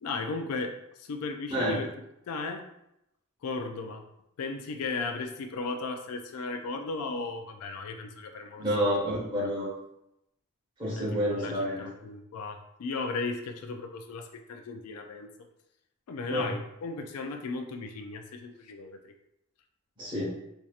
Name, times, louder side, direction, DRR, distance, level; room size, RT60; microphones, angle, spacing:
voice 1, 0.0-1.9 2.3-2.6 3.4-4.0 4.4-8.6 9.4-9.5 11.0-15.3 16.1-19.1, left 3 dB, 90° left, 5 dB, 0.4 m, -36 dB
voice 2, 1.5-1.8 8.6-9.7 10.8-11.9 16.3-16.5 20.0-20.3, equal, 20° right, -7 dB, 1.4 m, -29 dB
4.4 x 2.7 x 2.4 m, 0.83 s
head